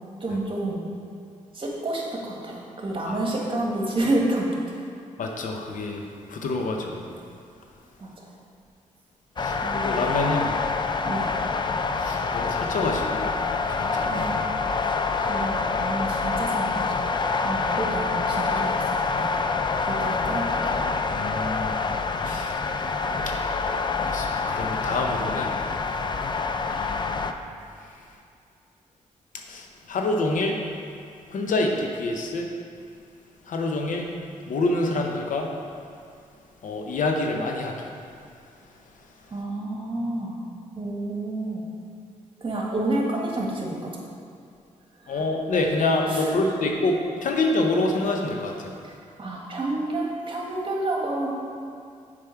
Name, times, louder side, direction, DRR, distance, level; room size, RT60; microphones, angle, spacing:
voice 1, 0.2-0.8 1.5-4.8 8.0-8.1 9.5-10.4 11.0-11.3 14.1-14.4 15.3-16.8 17.4-19.4 19.8-20.9 39.3-40.4 40.7-41.6 42.4-43.9 45.0-45.2 46.1-46.3 48.8-51.3, right 2 dB, 40° right, -2 dB, 1.7 m, -29 dB
voice 2, 5.2-6.0 6.3-7.0 9.4-10.5 12.0-13.3 13.7-14.3 17.4-17.5 21.1-21.8 22.2-22.6 24.0-25.5 26.7-27.2 29.5-30.6 31.3-32.5 33.5-34.1 34.5-35.5 36.6-37.7 45.1-48.7, left 2 dB, 70° left, 2 dB, 0.8 m, -27 dB
sound 1, 9.4-27.3, left 4 dB, 35° left, 0.4 m, -26 dB
6.8 x 5.2 x 4.5 m, 2.3 s
cardioid pair, 65°, 14 cm